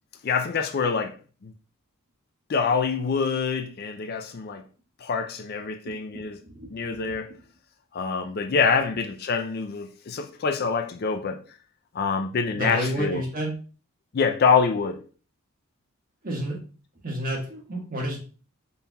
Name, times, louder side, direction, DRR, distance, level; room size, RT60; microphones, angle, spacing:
voice 1, 0.2-1.2 1.4-1.5 2.5-4.6 5.0-6.4 6.7-7.3 7.9-11.4 11.9-13.2 14.1-15.0, left 5 dB, 45° left, 0.4 m, -25 dB
voice 2, 5.8-7.4 12.5-13.5 16.2-16.6 17.0-18.2, right 1 dB, 40° right, 1.4 m, -31 dB
5.4 x 4.2 x 2.3 m
head